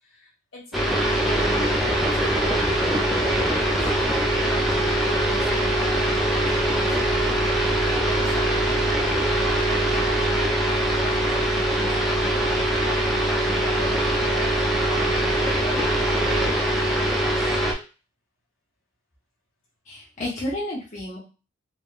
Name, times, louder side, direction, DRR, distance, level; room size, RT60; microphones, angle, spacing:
voice 1, 0.0-3.8 4.3-6.3 6.6-7.5 8.2-10.4 10.9-12.5 12.8-15.2 15.6-17.6, left 1 dB, 75° left, -3 dB, 1.3 m, -41 dB
sound 1, 0.7-17.7, right 1 dB, ahead, 0.4 m, -22 dB
voice 2, 19.9-21.2, left 1 dB, 35° left, -5 dB, 0.7 m, -31 dB
3.4 x 2.0 x 2.4 m, 0.34 s
head